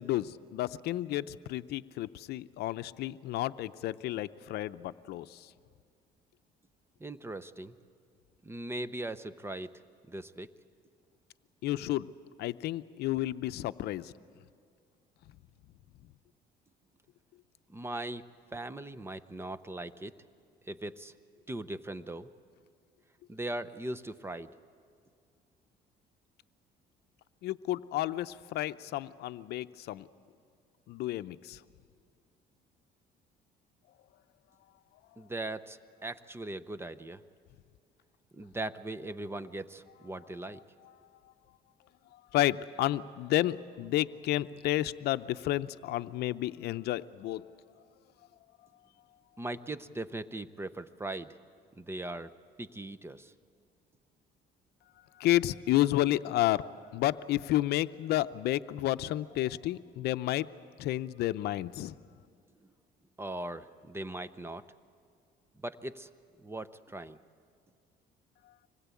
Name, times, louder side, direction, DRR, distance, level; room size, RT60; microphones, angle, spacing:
voice 1, 0.0-5.5 11.6-12.1 12.4-14.1 27.4-30.1 30.9-31.6 42.3-47.5 55.2-56.6 56.9-60.5 60.8-62.0, left 15 dB, 75° left, 13 dB, 0.6 m, -31 dB
voice 2, 7.0-7.7 8.4-9.7 10.1-10.5 17.7-18.2 18.5-20.1 20.7-21.1 21.5-22.3 23.3-24.5 35.2-37.2 38.3-40.6 49.4-51.4 51.8-52.3 52.6-53.3 63.2-64.6 65.6-66.1 66.4-67.2, right 2 dB, 15° right, 14 dB, 0.7 m, -39 dB
25.5 x 20.5 x 8.4 m, 2.3 s
cardioid pair, 110°, 17 cm